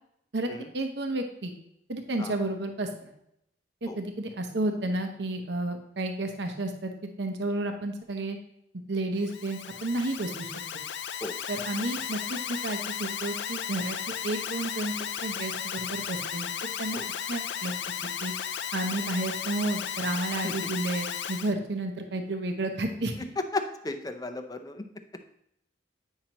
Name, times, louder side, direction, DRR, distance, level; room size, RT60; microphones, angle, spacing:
voice 1, 0.7-1.5 1.9-3.1 3.8-6.9 7.2-8.4 8.9-10.5 11.5-14.0 14.2-16.5 16.8-17.0 17.3-17.7 18.2-18.3 18.7-23.1, right 2 dB, 65° right, 4 dB, 0.9 m, -31 dB
Alarm, 9.2-21.5, left 8 dB, 75° left, 0.4 m, -35 dB
voice 2, 23.5-24.8, left 2 dB, 20° left, 7 dB, 0.6 m, -34 dB
9.0 x 5.7 x 2.9 m, 0.76 s
head